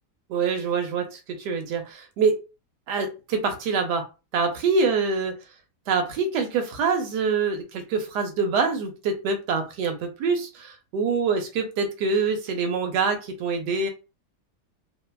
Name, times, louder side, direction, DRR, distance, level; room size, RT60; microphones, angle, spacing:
voice 1, 0.3-2.4 2.9-4.0 4.3-5.3 5.9-13.9, right 4 dB, 80° right, 5 dB, 1.2 m, -25 dB
3.0 x 2.1 x 2.2 m, 0.30 s
omnidirectional pair, 1.8 m